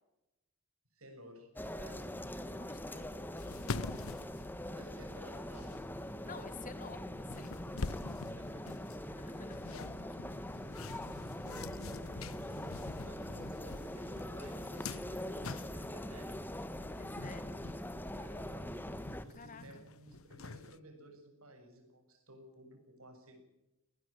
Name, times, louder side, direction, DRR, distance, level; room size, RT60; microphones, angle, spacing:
voice 1, 0.9-1.5 1.8-2.1 4.6-5.9 6.2-6.5 7.7-7.8 8.2-8.7 9.2-9.4 10.8-11.4 11.7-16.4 18.1-18.7 19.2-23.4, right 1 dB, 75° right, 5 dB, 7.1 m, -56 dB
sound 1, 1.6-19.2, left 1 dB, 10° left, 1.4 m, -43 dB
voice 2, 2.5-3.1 6.2-7.5 9.1-9.6 17.0-17.6 19.3-19.6, left 4 dB, 35° left, 12 dB, 1.8 m, -51 dB
sound 2, 3.0-3.1 3.4-5.1 5.5-5.8 6.8-6.9 7.3-16.0 16.7-17.8 18.2-18.3 18.6-20.8, left 4 dB, 70° left, 0.8 m, -45 dB
19.5 x 19.0 x 9.0 m, 0.96 s
head